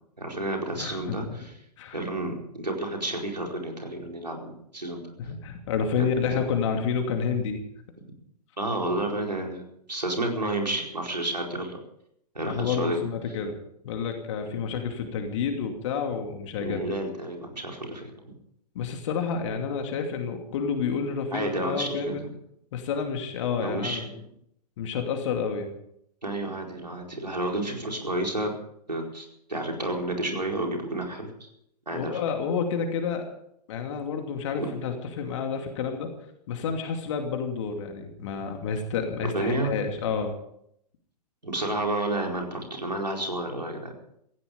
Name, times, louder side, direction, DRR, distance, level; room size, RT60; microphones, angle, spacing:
voice 1, 0.2-1.5 1.9-5.1 6.0-6.1 8.6-11.8 12.3-13.0 16.6-18.3 21.3-22.2 23.6-24.2 26.2-28.5 28.9-31.5 31.9-32.2 34.6-34.7 39.3-39.7 41.4-43.9, right 1 dB, 85° right, 1 dB, 4.6 m, -31 dB
voice 2, 0.7-1.3 1.8-2.0 5.2-7.6 12.4-13.6 13.8-17.0 18.7-22.2 22.7-24.0 24.8-25.7 31.9-33.3 33.7-36.1 36.5-40.3, left 6 dB, 45° left, 4 dB, 2.6 m, -29 dB
17.5 x 15.5 x 5.2 m, 0.72 s
figure-of-eight pair, 110°, 21 cm